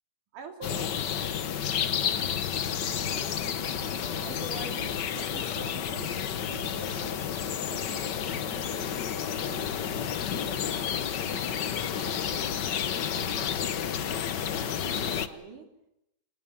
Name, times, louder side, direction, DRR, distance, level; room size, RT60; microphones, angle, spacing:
voice 1, 0.3-1.5 2.8-7.2 7.7-11.6 11.9-12.5 12.8-14.1 14.6-15.7, right 3 dB, 75° right, 5 dB, 4.8 m, -46 dB
sound 1, 0.6-15.3, left 8 dB, 85° left, 0.9 m, -31 dB
26.0 x 20.0 x 7.4 m, 0.81 s
omnidirectional pair, 3.6 m